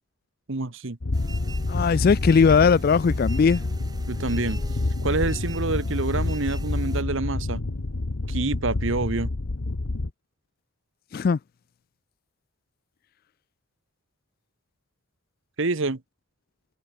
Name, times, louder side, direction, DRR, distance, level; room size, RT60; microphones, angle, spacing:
voice 1, 0.5-1.0 4.1-4.6 5.0-7.6 8.3-9.3 15.6-16.0, right 3 dB, 60° right, 1.1 m, -27 dB
sound 1, 1.0-10.1, left 2 dB, 70° left, 1.0 m, -28 dB
sound 2, 1.1-7.0, right 2 dB, 20° right, 3.7 m, -44 dB
voice 2, 1.7-3.6 11.1-11.4, left 5 dB, 45° left, 0.3 m, -19 dB
head